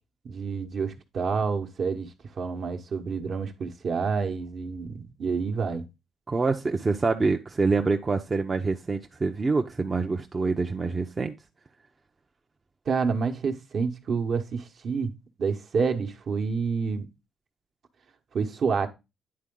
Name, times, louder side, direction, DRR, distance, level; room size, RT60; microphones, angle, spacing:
voice 1, 0.2-5.8 12.9-17.1 18.3-18.9, right 5 dB, 55° right, 1.0 m, -28 dB
voice 2, 6.3-11.3, right 4 dB, 30° right, 0.6 m, -26 dB
9.6 x 3.9 x 3.7 m
cardioid pair, 90°, 0 cm